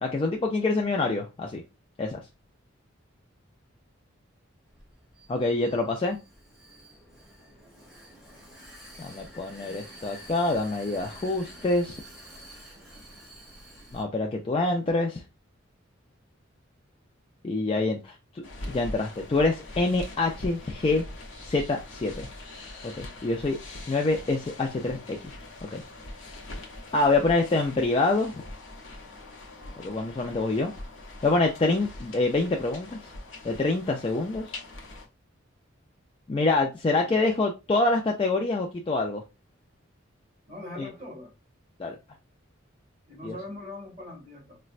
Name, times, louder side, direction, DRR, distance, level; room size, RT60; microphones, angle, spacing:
voice 1, 0.0-1.6 2.0-2.2 5.3-6.2 9.0-12.0 13.9-15.2 17.4-21.0 21.4-22.3 22.8-23.6 23.9-25.3 25.6-25.8 26.9-28.4 29.8-30.7 31.2-33.1 33.4-34.6 36.3-39.2 41.8-42.0 43.2-43.4, left 2 dB, 25° left, 0.3 m, -26 dB
Vehicle, 4.6-14.0, equal, ahead, 1.3 m, -49 dB
sound 1, 18.4-35.1, left 2 dB, 75° left, 0.8 m, -42 dB
voice 2, 36.8-37.2 40.5-41.3 43.1-44.6, left 1 dB, 35° right, 1.7 m, -42 dB
4.0 x 2.2 x 2.4 m
head